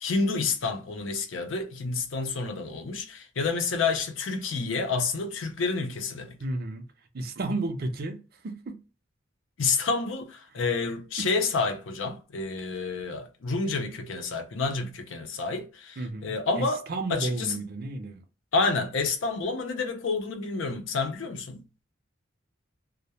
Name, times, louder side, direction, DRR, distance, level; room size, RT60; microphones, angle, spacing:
voice 1, 0.0-6.4 9.6-16.8 17.1-17.6 18.5-21.6, left 4 dB, 75° left, 0.5 m, -29 dB
voice 2, 6.4-6.8 7.1-8.8 11.2-11.3 16.0-18.2, right 2 dB, 50° right, 0.5 m, -33 dB
2.2 x 2.1 x 2.8 m
head